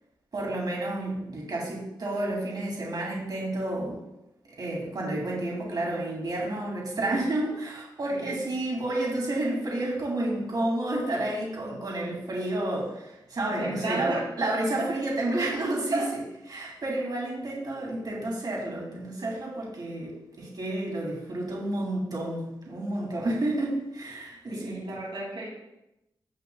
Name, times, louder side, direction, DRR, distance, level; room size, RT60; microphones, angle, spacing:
voice 1, 0.3-4.0 4.6-24.8, right 1 dB, 55° right, -3 dB, 2.5 m, -30 dB
voice 2, 8.1-8.4 13.6-14.2 14.8-14.9 15.9-16.1 24.5-25.5, right 2 dB, 85° right, -4 dB, 2.6 m, -32 dB
16.0 x 5.4 x 2.3 m, 0.89 s
wide cardioid pair, 100°, 8 cm